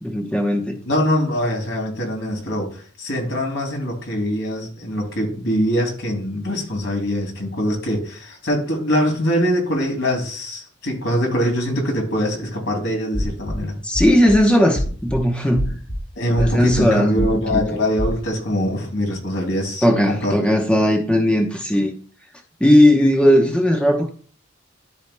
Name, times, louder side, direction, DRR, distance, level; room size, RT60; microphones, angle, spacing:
voice 1, 0.0-0.8 13.8-15.7 16.4-17.6 19.8-21.9 22.6-24.1, equal, 5° left, 0.9 m, -17 dB
voice 2, 0.8-13.8 16.2-20.3, equal, 70° left, 2.8 m, -23 dB
sound 1, 13.1-13.6 13.9-14.4 14.8-15.2 15.6-16.0 16.4-16.8 17.2-17.6 18.0-18.2, equal, 85° left, 3.5 m, -24 dB
14.0 x 4.7 x 2.2 m
head